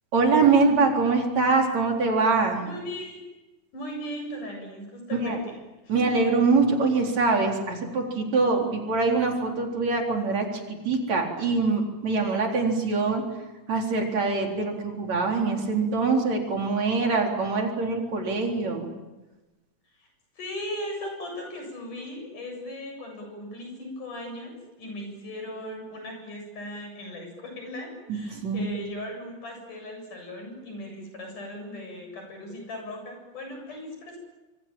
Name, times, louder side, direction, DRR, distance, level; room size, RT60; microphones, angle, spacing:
voice 1, 0.1-2.6 5.2-5.4 5.9-10.5 10.9-13.2 13.7-18.9 28.1-28.7, right 4 dB, 60° right, 1 dB, 5.1 m, -24 dB
voice 2, 2.6-3.2 3.7-5.5 5.8-5.9 20.0-20.1 20.4-34.2, left 1 dB, 80° left, 3 dB, 9.4 m, -38 dB
26.5 x 24.0 x 9.1 m, 1.1 s
omnidirectional pair, 3.6 m